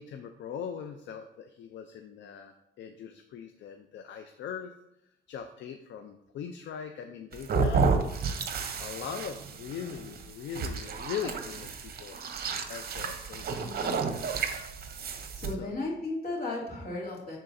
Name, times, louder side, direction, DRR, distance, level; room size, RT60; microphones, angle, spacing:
voice 1, 0.0-4.7 5.3-7.9 8.8-12.2 12.7-13.5 15.6-15.7, left 8 dB, 65° left, 6 dB, 0.5 m, -40 dB
sound 1, 7.3-15.5, right 4 dB, 50° right, 0.8 m, -31 dB
voice 2, 13.6-14.1 15.4-17.4, left 2 dB, 50° left, -3 dB, 2.4 m, -35 dB
10.5 x 3.8 x 2.7 m, 0.81 s
cardioid pair, 90°, 20 cm